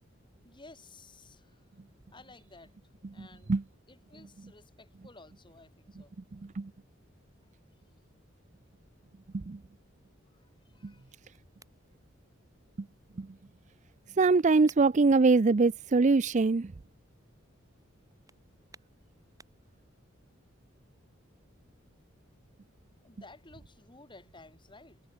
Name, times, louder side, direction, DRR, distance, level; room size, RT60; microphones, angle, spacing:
voice 1, 0.4-1.7 2.1-2.7 3.1-3.5 3.9-6.2 10.3-11.1 23.0-25.0, left 3 dB, 25° left, 4.8 m, -55 dB
voice 2, 3.2-3.6 6.6-6.7 9.3-9.6 10.8-10.9 13.2-13.3 14.2-16.7, right 3 dB, 35° right, 0.5 m, -23 dB
sound 1, 10.5-19.8, right 3 dB, 20° right, 7.3 m, -64 dB
head